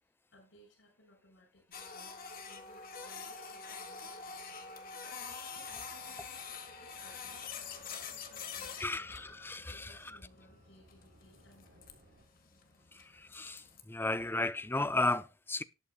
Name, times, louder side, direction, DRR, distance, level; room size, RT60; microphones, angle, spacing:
voice 1, 0.3-2.1 2.4-4.7 5.2-9.1 9.7-11.9, left 1 dB, 75° left, 6.9 m, -63 dB
Printer, 1.7-13.8, left 5 dB, 50° left, 1.6 m, -46 dB
sound 1, 6.9-12.3, equal, 65° right, 5.7 m, -64 dB
voice 2, 8.8-9.8 13.3-13.6 13.9-15.6, left 2 dB, 10° left, 0.5 m, -33 dB
18.5 x 8.4 x 2.3 m
head